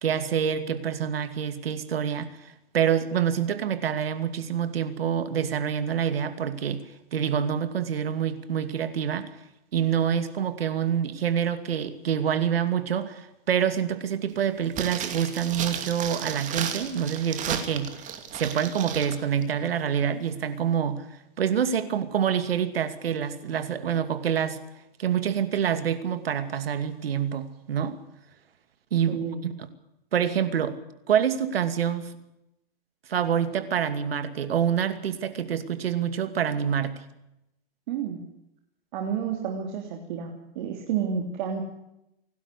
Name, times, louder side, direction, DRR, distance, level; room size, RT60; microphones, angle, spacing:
voice 1, 0.0-9.3 9.7-17.9 18.3-21.1 21.4-24.6 25.0-28.0 28.9-29.3 29.6-29.7 30.1-30.8 31.1-32.1 33.1-37.0, right 8 dB, 80° right, 11 dB, 2.6 m, -26 dB
bag rustle, 14.7-19.1 19.4-19.5, right 8 dB, 25° right, 2.7 m, -34 dB
voice 2, 29.1-29.5 37.9-38.2 38.9-41.6, right 7 dB, 55° right, 2 dB, 3.4 m, -30 dB
26.5 x 12.5 x 8.4 m, 0.85 s
hypercardioid pair, 135°, 29 cm